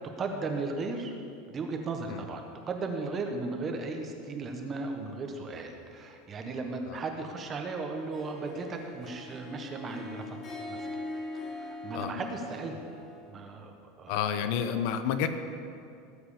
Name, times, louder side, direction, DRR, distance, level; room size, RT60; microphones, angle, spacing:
voice 1, 0.2-1.1 1.4-10.8 11.3-12.9 13.3-14.3, right 3 dB, 25° right, 4 dB, 1.3 m, -36 dB
Harp, 8.0-13.3, left 2 dB, 30° left, 3.7 m, -41 dB
voice 2, 14.1-15.3, left 8 dB, 60° left, 9 dB, 0.8 m, -30 dB
18.5 x 7.8 x 5.1 m, 2.5 s
supercardioid pair, 155°, 0 cm